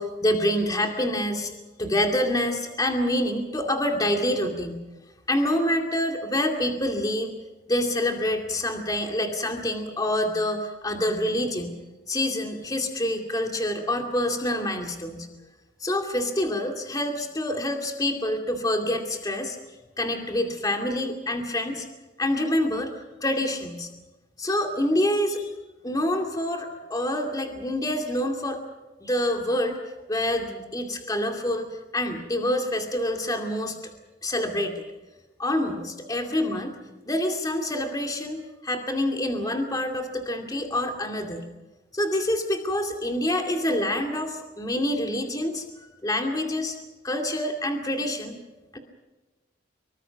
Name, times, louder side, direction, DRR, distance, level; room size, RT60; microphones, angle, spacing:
voice 1, 0.0-4.8 5.3-7.3 7.7-11.8 12.1-15.3 15.8-19.6 20.0-21.9 22.2-22.9 23.2-23.9 24.4-25.5 25.8-28.6 29.0-33.8 34.2-34.8 35.4-36.7 37.1-41.5 41.9-45.6 46.0-46.8 47.0-48.4 48.7-48.8, left 1 dB, 20° left, 3 dB, 2.4 m, -26 dB
25.5 x 23.5 x 5.9 m, 1.1 s
head